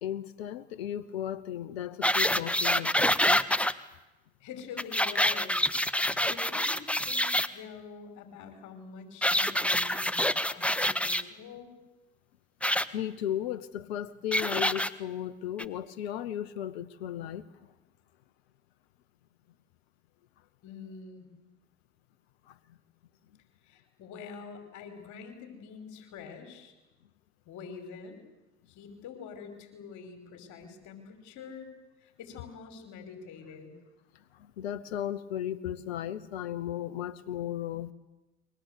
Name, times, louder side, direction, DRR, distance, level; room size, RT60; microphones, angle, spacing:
voice 1, 0.0-3.4 12.9-17.4 22.5-22.6 34.6-37.9, left 11 dB, 90° left, 17 dB, 1.0 m, -35 dB
sound 1, 2.0-3.7 4.8-7.5 9.2-11.2 12.6-12.8 14.3-14.9 15.6-15.7, left 1 dB, 5° left, 1.5 m, -26 dB
voice 2, 4.4-11.7 20.6-21.3 23.6-26.7 27.5-28.2 28.7-31.7 32.0-33.7, left 6 dB, 70° left, 8 dB, 5.5 m, -46 dB
29.5 x 23.5 x 8.3 m, 1.0 s
hypercardioid pair, 60°, 30 cm